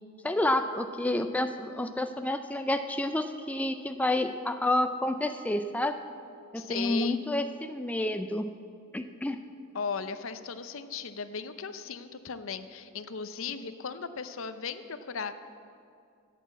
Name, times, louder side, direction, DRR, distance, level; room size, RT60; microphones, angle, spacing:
voice 1, 0.2-6.0 6.5-8.5 8.9-9.4, left 1 dB, 5° left, 7 dB, 0.4 m, -29 dB
voice 2, 6.5-7.2 9.7-15.4, left 5 dB, 70° left, 11 dB, 0.7 m, -37 dB
12.5 x 8.5 x 8.2 m, 2.5 s
head